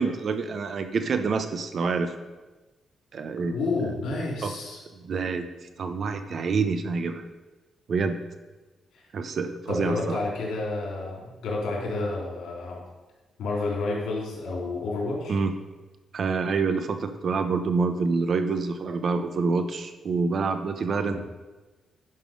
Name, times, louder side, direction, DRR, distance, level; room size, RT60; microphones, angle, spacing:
voice 1, 0.0-2.1 3.1-3.6 4.4-4.5 5.0-5.5 5.8-7.3 7.9-8.2 9.1-10.2 15.3-15.5 16.1-21.2, right 4 dB, 50° right, 8 dB, 0.8 m, -27 dB
voice 2, 3.5-4.8 8.9-9.0 9.7-12.8 13.4-15.4 21.1-21.2, left 3 dB, 90° left, -2 dB, 3.5 m, -30 dB
11.0 x 5.9 x 5.2 m, 1.2 s
cardioid pair, 135°, 0 cm